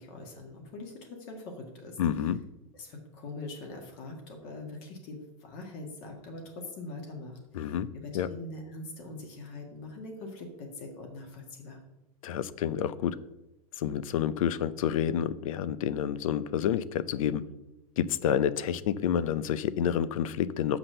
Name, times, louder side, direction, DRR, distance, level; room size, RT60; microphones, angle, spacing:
voice 1, 0.0-2.0 2.7-11.8, left 2 dB, 45° left, 2 dB, 1.8 m, -43 dB
voice 2, 2.0-2.4 7.5-7.9 8.1-8.3 12.2-13.2 13.8-17.4 18.0-20.8, left 9 dB, 70° left, 16 dB, 0.6 m, -29 dB
6.1 x 5.9 x 6.7 m, 0.93 s
supercardioid pair, 150°, 18 cm